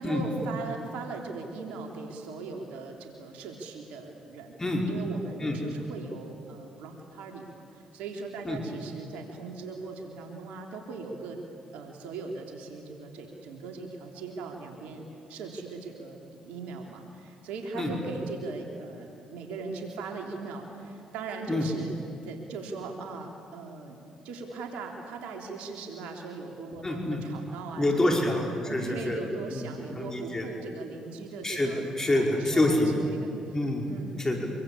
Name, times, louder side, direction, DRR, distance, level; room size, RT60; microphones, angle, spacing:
voice 1, 0.0-4.6 4.8-11.4 11.7-21.9 22.2-24.0 24.2-28.3 28.6-31.8 32.1-33.6 33.9-34.2, right 3 dB, 80° right, 2 dB, 3.3 m, -39 dB
voice 2, 26.8-27.2 27.8-29.2 29.5-30.5 31.4-32.9 33.5-33.9 34.2-34.5, left 1 dB, 25° left, 1 dB, 5.2 m, -27 dB
26.0 x 24.0 x 8.6 m, 2.6 s
supercardioid pair, 60°, 2 cm